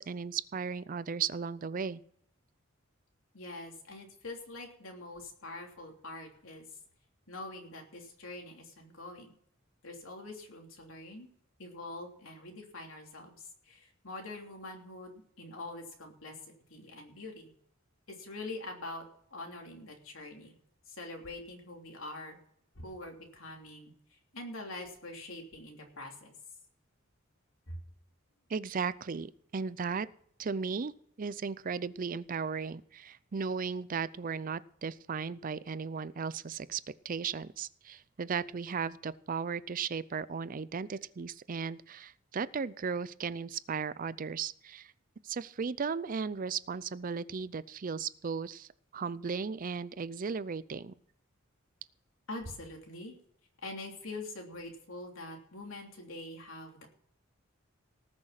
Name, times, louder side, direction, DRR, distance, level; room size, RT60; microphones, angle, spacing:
voice 1, 0.0-2.0 28.5-30.1 30.4-30.9 31.2-44.9 45.2-50.9, right 5 dB, 40° right, 17 dB, 0.5 m, -36 dB
voice 2, 3.3-6.8 7.3-9.3 9.8-11.3 11.6-16.4 16.7-17.5 18.1-19.0 19.3-20.5 20.9-22.4 22.7-26.3 27.7-27.8 52.3-53.2 53.6-56.9, left 2 dB, 80° left, 2 dB, 3.1 m, -44 dB
19.0 x 6.5 x 5.8 m, 0.67 s
head